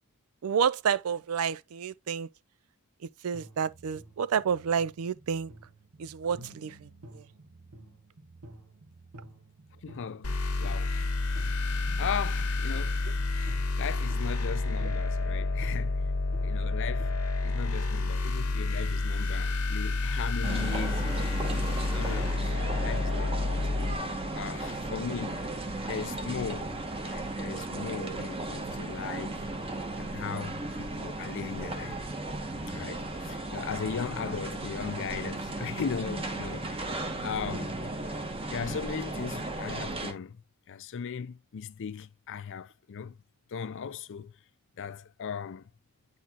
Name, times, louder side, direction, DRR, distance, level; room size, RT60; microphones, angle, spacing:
voice 1, 0.4-2.3 3.2-5.5 6.0-6.9 7.1-7.2, right 7 dB, 75° right, 0.4 m, -29 dB
sound 1, 3.3-17.3, right 1 dB, 90° right, 1.6 m, -51 dB
voice 2, 9.8-11.0 12.0-13.0 13.8-16.1 16.4-17.1 17.4-25.4 25.9-26.8 27.0-29.3 30.0-32.0 32.7-36.8 37.2-37.8 38.5-40.4 40.7-43.2 43.5-44.3 44.8-45.6, left 6 dB, 60° left, 0.4 m, -38 dB
sound 2, 10.2-23.9, left 3 dB, 90° left, 1.2 m, -29 dB
sound 3, 20.4-40.1, right 2 dB, 25° right, 1.0 m, -35 dB
8.3 x 4.2 x 2.8 m
head